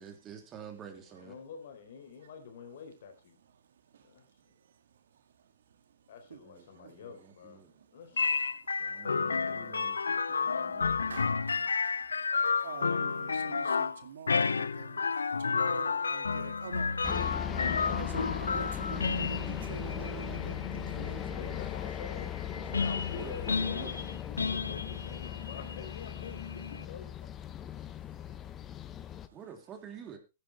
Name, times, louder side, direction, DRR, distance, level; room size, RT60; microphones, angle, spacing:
voice 1, 0.0-1.4 6.4-7.7 8.8-11.7 23.1-24.0 29.3-30.2, right 7 dB, 25° right, 3.2 m, -49 dB
voice 2, 1.2-3.4 4.0-4.3 6.1-7.6 7.9-8.4 21.2-27.3, left 6 dB, 60° left, 4.1 m, -47 dB
sound 1, 8.2-26.8, left 5 dB, 85° left, 0.6 m, -32 dB
Clapping, 11.1-13.4, right 3 dB, 90° right, 4.0 m, -49 dB
voice 3, 12.6-15.0 15.4-17.0 17.9-20.5 20.9-21.6, right 7 dB, 70° right, 2.1 m, -45 dB
sound 2, 17.0-29.3, left 10 dB, 25° left, 0.8 m, -38 dB
15.0 x 10.0 x 3.3 m
hypercardioid pair, 120°, 0 cm